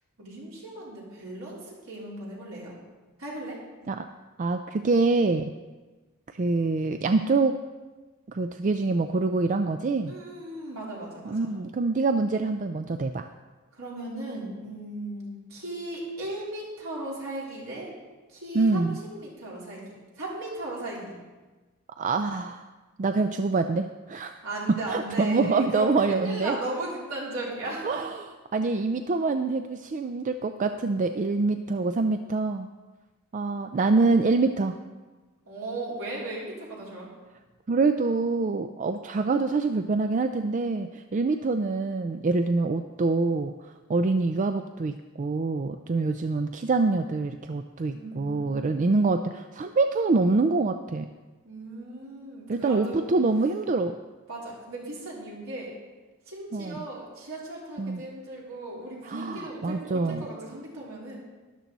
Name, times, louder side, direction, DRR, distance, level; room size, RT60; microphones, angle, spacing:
voice 1, 0.2-2.7 3.2-3.9 10.0-11.5 13.7-17.9 18.3-21.2 24.4-28.0 35.5-37.1 47.9-49.0 51.4-53.1 54.3-55.7 56.2-61.2, right 1 dB, 70° right, -5 dB, 3.8 m, -37 dB
voice 2, 4.4-5.5 6.3-7.6 8.3-10.1 11.3-13.3 18.5-19.0 22.0-22.6 23.0-24.3 24.9-26.6 27.8-28.1 28.5-32.7 33.3-34.7 37.7-51.1 52.5-54.0 56.5-56.8 57.8-58.0 59.1-60.2, right 3 dB, 35° right, 8 dB, 0.4 m, -25 dB
12.5 x 11.5 x 4.0 m, 1.2 s
head